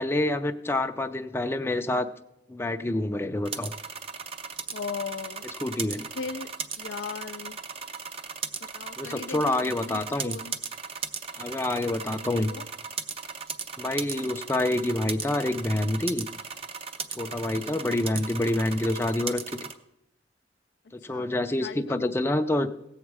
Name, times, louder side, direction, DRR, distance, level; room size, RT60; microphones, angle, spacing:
voice 1, 0.0-2.1 2.5-3.7 5.6-6.1 9.0-10.4 11.3-12.5 13.8-16.3 17.1-19.7 20.9-22.7, left 1 dB, 15° left, 0.5 m, -27 dB
sound 1, 3.4-19.7, right 5 dB, 35° right, 0.6 m, -37 dB
voice 2, 4.7-5.5 6.2-7.6 8.6-10.5 11.8-12.7 17.5-17.8 21.1-21.3 21.6-22.4, left 5 dB, 75° left, 0.4 m, -39 dB
17.0 x 7.3 x 4.7 m
head